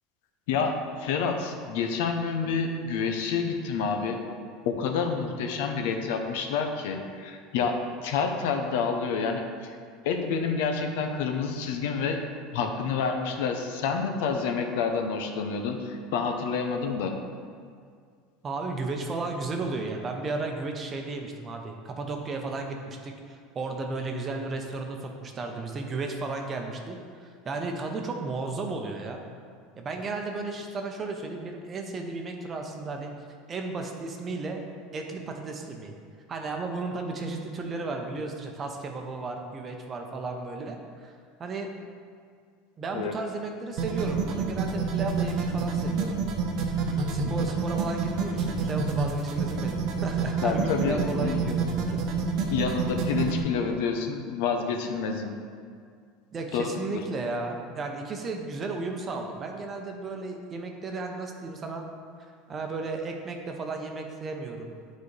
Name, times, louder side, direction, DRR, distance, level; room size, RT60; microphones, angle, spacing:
voice 1, 0.5-4.2 4.6-9.8 10.0-12.2 12.5-17.1 42.9-43.1 47.2-47.3 50.4-51.3 52.5-55.3 56.5-57.0, left 5 dB, 80° left, 4 dB, 0.7 m, -28 dB
voice 2, 18.4-29.2 29.8-33.1 33.5-34.6 34.9-36.0 36.3-41.1 41.4-41.7 42.8-46.2 46.8-52.0 56.3-61.8 62.5-64.8, right 3 dB, 25° right, 3 dB, 0.7 m, -34 dB
sound 1, 43.8-53.4, right 4 dB, 55° right, 0.8 m, -28 dB
9.4 x 4.1 x 3.3 m, 2.2 s
supercardioid pair, 135°, 0 cm